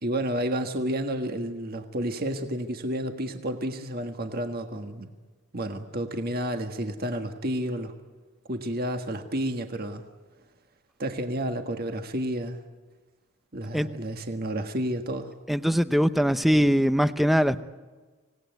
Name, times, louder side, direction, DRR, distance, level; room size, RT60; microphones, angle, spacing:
voice 1, 0.0-5.1 5.5-7.9 8.5-10.0 11.0-12.6 13.5-15.3, right 1 dB, 45° right, 6 dB, 1.6 m, -30 dB
voice 2, 15.5-17.6, equal, ahead, 12 dB, 0.7 m, -22 dB
26.0 x 18.5 x 9.4 m, 1.3 s
head